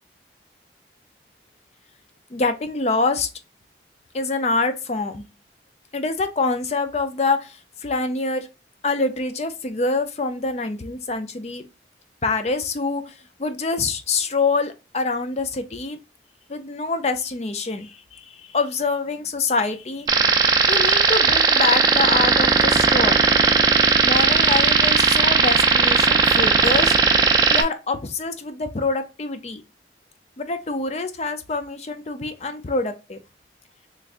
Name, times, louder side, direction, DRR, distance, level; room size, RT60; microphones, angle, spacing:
voice 1, 2.3-3.3 4.1-5.2 5.9-8.5 8.8-11.6 12.2-16.0 16.5-23.2 24.0-26.9 27.5-29.6 30.4-33.2, left 3 dB, 35° left, 0.5 m, -25 dB
sound 1, 20.1-27.6, right 4 dB, 20° right, 0.4 m, -17 dB
3.5 x 3.2 x 2.5 m
head